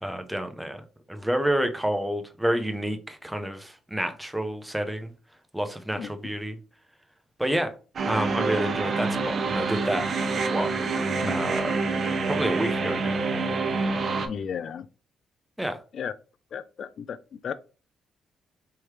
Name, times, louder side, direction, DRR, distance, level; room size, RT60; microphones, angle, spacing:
voice 1, 0.0-5.1 5.5-6.6 7.4-7.7 8.0-10.1 10.5-10.7 11.3-11.8 12.3-13.2 15.6-15.8, right 1 dB, 5° right, 0.7 m, -29 dB
sound 1, 8.0-14.3, right 4 dB, 50° right, 0.7 m, -27 dB
voice 2, 14.3-14.9 15.9-16.1 16.5-17.2 17.4-17.5, left 7 dB, 55° left, 0.4 m, -34 dB
4.6 x 3.1 x 3.3 m
cardioid pair, 90°, 0 cm